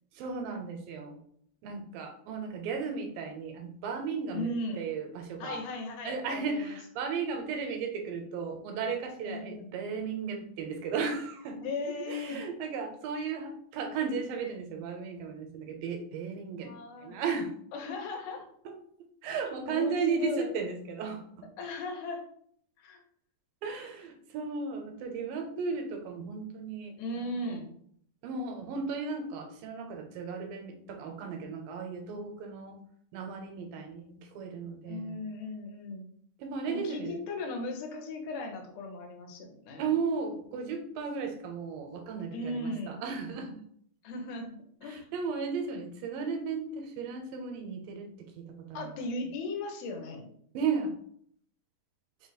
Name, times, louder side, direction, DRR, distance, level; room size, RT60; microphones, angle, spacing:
voice 1, 0.1-1.2 1.6-4.5 4.8-5.6 6.1-11.7 12.1-16.7 17.0-17.5 19.2-21.4 23.6-27.6 28.2-32.8 33.1-35.2 36.4-37.2 39.8-43.6 44.8-48.9 50.5-50.9, right 5 dB, 80° right, 4 dB, 2.3 m, -35 dB
voice 2, 1.7-2.0 4.3-4.8 5.4-6.8 9.2-9.7 11.6-12.4 16.6-17.2 17.7-18.5 19.7-20.5 21.6-22.2 22.8-23.0 27.0-27.7 34.9-36.0 36.7-39.9 42.3-43.0 44.0-45.1 48.7-50.3, left 2 dB, 85° left, 2 dB, 2.7 m, -37 dB
5.6 x 2.0 x 4.0 m, 0.63 s
omnidirectional pair, 4.2 m